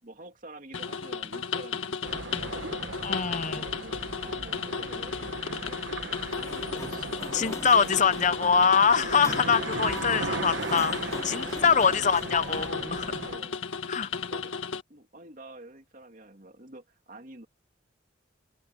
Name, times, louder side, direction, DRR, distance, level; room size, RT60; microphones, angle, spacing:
voice 1, 0.0-3.0 3.4-5.9 6.4-8.7 11.3-12.5 13.2-13.6 14.3-14.6 14.9-17.5, right 2 dB, 40° right, 2.6 m, -48 dB
sound 1, 0.7-14.8, left 6 dB, 85° left, 1.8 m, -34 dB
sound 2, 2.0-13.4, right 3 dB, 60° right, 1.5 m, -37 dB
voice 2, 3.0-3.6 7.3-13.1 13.9-14.1, left 6 dB, 40° left, 0.7 m, -24 dB
Sliding door, 6.2-12.7, left 2 dB, 15° left, 4.4 m, -44 dB
head